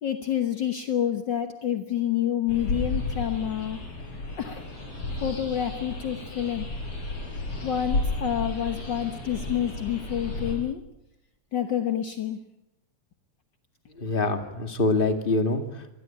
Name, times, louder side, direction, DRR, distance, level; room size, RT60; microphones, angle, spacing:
voice 1, 0.0-3.8 4.4-4.6 5.2-6.7 7.6-10.8 11.5-12.4, left 10 dB, 65° left, 7 dB, 1.1 m, -28 dB
sound 1, 2.5-10.6, left 2 dB, 45° left, 6.7 m, -33 dB
voice 2, 14.0-15.9, left 3 dB, 20° left, 7 dB, 1.8 m, -25 dB
25.5 x 20.0 x 8.8 m, 0.88 s
omnidirectional pair, 3.8 m